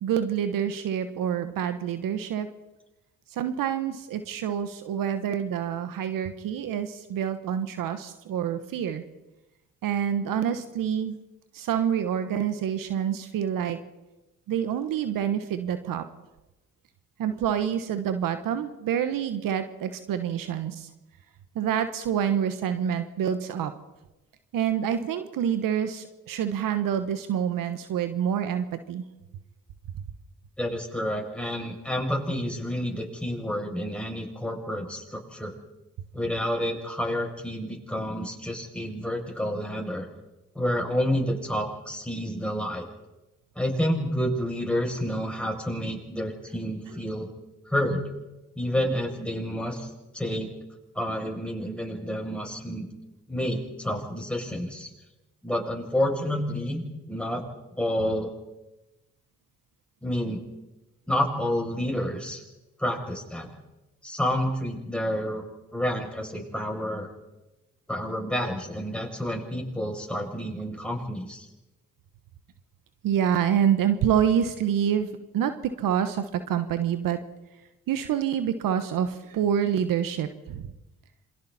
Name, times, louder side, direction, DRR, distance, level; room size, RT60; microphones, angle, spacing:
voice 1, 0.0-2.5 3.3-9.0 9.8-11.2 11.5-13.8 14.5-16.1 17.2-20.9 21.5-23.7 24.5-29.0 46.9-47.0 73.0-77.2 77.9-80.7, right 9 dB, 75° right, 10 dB, 1.3 m, -27 dB
voice 2, 30.6-35.5 36.1-40.1 40.5-42.9 43.6-47.3 47.7-48.0 48.6-50.5 50.9-52.9 53.3-54.9 55.4-57.4 57.8-58.3 60.0-60.4 61.1-62.4 62.8-63.5 64.0-65.4 65.7-67.1 67.9-71.5, equal, 5° left, 0 dB, 7.4 m, -29 dB
27.5 x 24.0 x 4.3 m, 1.0 s
supercardioid pair, 50°, 33 cm